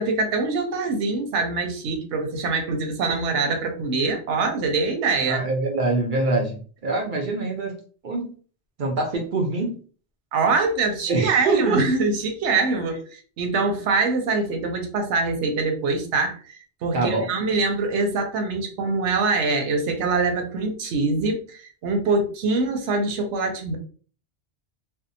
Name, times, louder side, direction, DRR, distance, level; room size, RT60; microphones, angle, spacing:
voice 1, 0.0-5.4 10.3-23.8, right 3 dB, 90° right, 4 dB, 0.9 m, -24 dB
voice 2, 5.2-7.8 8.0-8.3 8.8-9.8 11.1-11.8 16.9-17.3, right 3 dB, 55° right, 1 dB, 0.6 m, -24 dB
2.6 x 2.1 x 2.6 m, 0.40 s
omnidirectional pair, 1.2 m